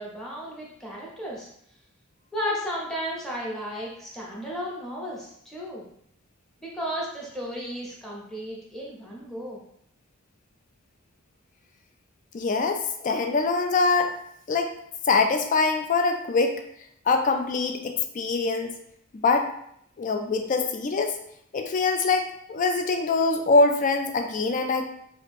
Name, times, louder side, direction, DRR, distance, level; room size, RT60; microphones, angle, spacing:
voice 1, 0.0-1.5 2.3-5.8 6.6-9.6, equal, ahead, -4 dB, 0.8 m, -34 dB
voice 2, 12.3-14.1 14.5-14.7 15.1-16.6 17.1-18.7 19.2-19.5 20.0-21.2 21.5-24.8, left 3 dB, 35° left, 6 dB, 0.4 m, -23 dB
2.9 x 2.5 x 3.4 m, 0.70 s
head